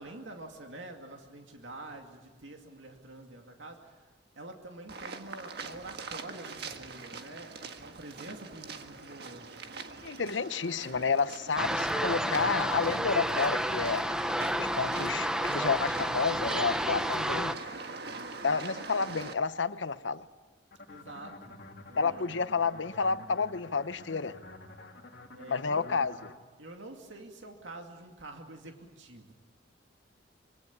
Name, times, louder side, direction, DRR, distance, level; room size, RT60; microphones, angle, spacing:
voice 1, 0.0-9.5 20.9-22.3 25.3-25.9 26.6-29.3, right 2 dB, 80° right, 3 dB, 2.4 m, -47 dB
sound 1, 4.9-19.3, right 4 dB, 60° right, 1.6 m, -43 dB
voice 2, 10.0-14.1 14.4-17.6 18.4-20.3 22.0-24.4 25.5-26.1, left 5 dB, 75° left, 13 dB, 0.9 m, -30 dB
sound 2, 11.6-17.5, equal, 5° right, 0.8 m, -30 dB
sound 3, 20.7-26.4, left 2 dB, 60° left, 2.5 m, -49 dB
25.0 x 22.5 x 8.5 m, 1.3 s
head